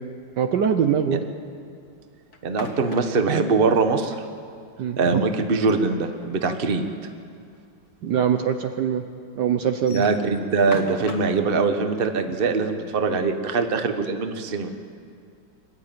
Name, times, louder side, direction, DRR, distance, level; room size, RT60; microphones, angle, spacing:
voice 1, 0.4-1.2 4.8-5.2 8.0-9.0 9.4-10.0, right 8 dB, 65° right, 7 dB, 1.3 m, -22 dB
sound 1, 2.3-3.4 5.5-6.8 7.1-7.2 7.5-7.6 8.4-8.5 9.7-11.4, left 4 dB, 50° left, 2.0 m, -38 dB
voice 2, 2.4-4.1 5.0-6.9 9.9-14.7, right 4 dB, 30° right, 7 dB, 1.2 m, -22 dB
24.5 x 12.5 x 9.2 m, 2.4 s
omnidirectional pair, 2.2 m